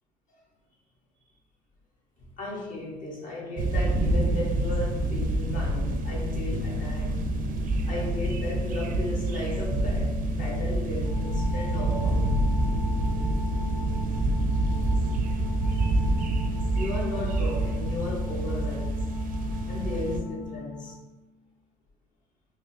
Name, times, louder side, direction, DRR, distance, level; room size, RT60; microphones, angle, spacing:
voice 1, 2.4-7.1 7.8-12.5 16.7-19.0 19.7-21.0, left 2 dB, 50° left, -4 dB, 1.3 m, -35 dB
sound 1, 3.6-20.2, right 2 dB, 55° right, 0.5 m, -27 dB
sound 2, 4.0-21.5, left 4 dB, 70° left, 0.8 m, -39 dB
Wind instrument woodwind instrument, 11.0-21.0, left 1 dB, 15° left, 0.7 m, -44 dB
4.0 x 2.8 x 2.8 m, 1.1 s
cardioid pair, 110°, 17 cm